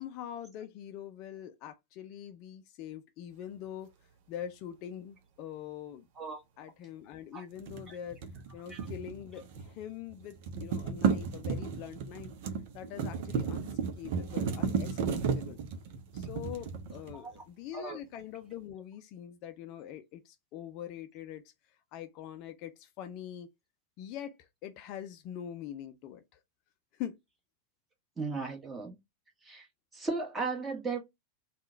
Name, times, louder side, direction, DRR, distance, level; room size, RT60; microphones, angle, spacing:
voice 1, 0.0-3.9 4.3-6.1 6.6-8.2 8.5-12.3 12.7-13.7 14.0-15.6 16.1-21.5 21.9-23.5 24.0-26.2 27.0-27.2, left 10 dB, 40° left, 0.4 m, -43 dB
sound 1, 7.6-9.8 10.1-17.4, right 6 dB, 50° right, 0.7 m, -34 dB
voice 2, 28.2-28.9 29.4-29.7 29.9-31.0, right 4 dB, 15° right, 1.5 m, -36 dB
3.7 x 2.3 x 3.8 m
figure-of-eight pair, 90°, 0 cm